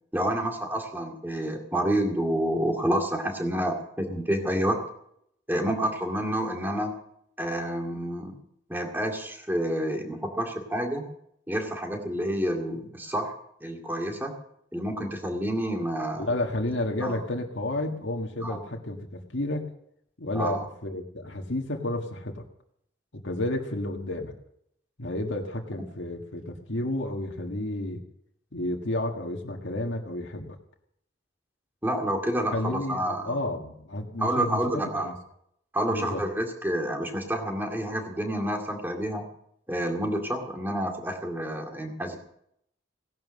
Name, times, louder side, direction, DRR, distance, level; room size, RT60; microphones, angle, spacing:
voice 1, 0.1-4.8 5.5-6.9 7.4-8.4 8.7-11.0 11.5-13.3 13.6-14.3 14.7-16.3 17.0-17.2 18.4-18.6 20.3-20.6 31.8-33.4 34.2-35.1 35.7-39.3 39.7-42.2, right 1 dB, 10° right, 2 dB, 2.2 m, -29 dB
voice 2, 16.2-19.7 20.2-22.4 23.1-24.3 25.0-28.0 28.5-30.6 32.5-35.1 35.9-36.2, left 1 dB, 80° left, 1 dB, 1.8 m, -31 dB
17.0 x 11.0 x 6.5 m, 0.74 s
head